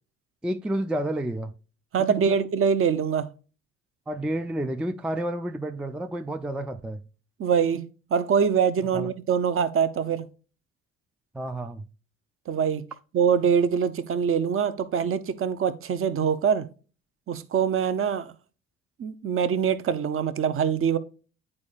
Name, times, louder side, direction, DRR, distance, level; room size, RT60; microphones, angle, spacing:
voice 1, 0.4-1.5 2.1-2.4 4.1-7.0 8.9-9.1 11.3-11.9, right 1 dB, 5° right, 0.4 m, -30 dB
voice 2, 1.9-3.3 7.4-10.3 12.5-12.8 13.1-16.7 17.3-18.3 19.0-21.0, right 7 dB, 35° right, 0.7 m, -24 dB
9.6 x 4.4 x 2.4 m
figure-of-eight pair, 45°, 39 cm